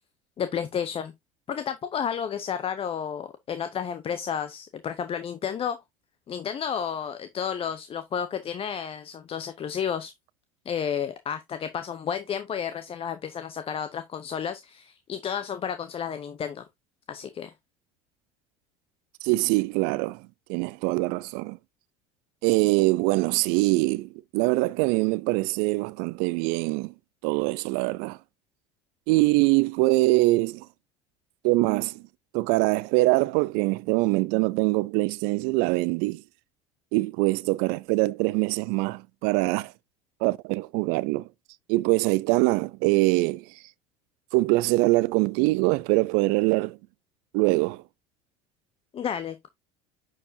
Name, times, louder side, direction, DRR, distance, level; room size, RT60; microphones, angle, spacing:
voice 1, 0.4-1.1 1.5-5.8 6.3-10.1 10.7-16.6 17.1-17.5 48.9-49.5, left 8 dB, 35° left, 0.8 m, -31 dB
voice 2, 19.2-20.2 20.5-21.6 22.4-26.9 27.2-28.2 29.1-30.7 31.4-32.0 32.3-36.2 36.9-39.7 40.2-41.3 41.7-43.4 44.3-46.8 47.3-47.8, right 22 dB, 65° right, 0.5 m, -23 dB
9.7 x 4.8 x 2.7 m
hypercardioid pair, 80°, 16 cm